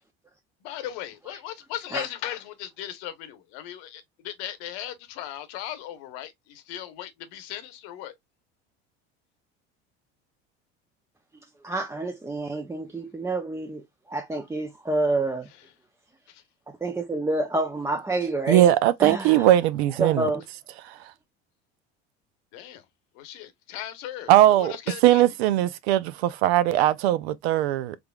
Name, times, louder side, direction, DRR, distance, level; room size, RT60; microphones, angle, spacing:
voice 1, 0.6-8.1 16.3-16.4 22.5-22.8 23.1-25.2, left 12 dB, 70° left, 0.9 m, -37 dB
voice 2, 11.6-15.5 16.7-18.7 19.0-19.5 20.0-20.4, right 2 dB, 10° right, 0.4 m, -28 dB
voice 3, 18.5-20.3 20.8-21.0 24.3-24.7 25.0-28.0, right 13 dB, 80° right, 0.5 m, -20 dB
3.5 x 3.4 x 2.3 m
hypercardioid pair, 85°, 31 cm